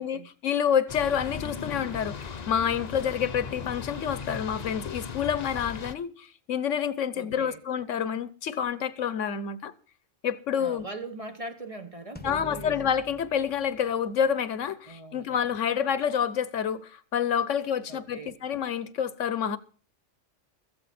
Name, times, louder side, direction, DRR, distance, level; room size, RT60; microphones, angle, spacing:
voice 1, 0.0-9.7 10.2-10.9 12.2-19.6, left 8 dB, 75° left, 1.2 m, -28 dB
sound 1, 0.9-5.9, left 6 dB, 40° left, 0.8 m, -37 dB
voice 2, 7.1-7.6 10.6-12.7 14.9-15.3 17.9-18.3, right 2 dB, 30° right, 1.0 m, -40 dB
sound 2, 12.2-14.7, left 2 dB, 10° left, 0.9 m, -45 dB
15.5 x 14.0 x 4.2 m
omnidirectional pair, 1.3 m